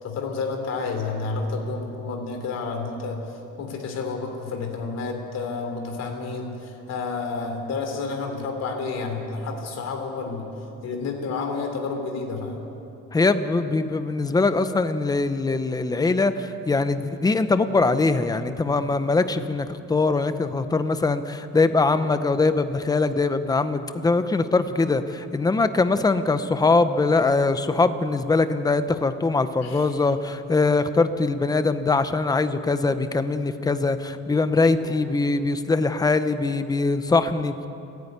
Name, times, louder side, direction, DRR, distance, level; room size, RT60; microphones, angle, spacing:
voice 1, 0.0-3.2 3.6-10.5 10.8-12.6 21.9-22.1 29.6-29.9 34.8-35.0, left 4 dB, 50° left, 3 dB, 3.4 m, -30 dB
voice 2, 13.1-37.7, left 3 dB, 10° left, 11 dB, 0.7 m, -22 dB
29.0 x 9.9 x 9.4 m, 2.8 s
cardioid pair, 175°, 32 cm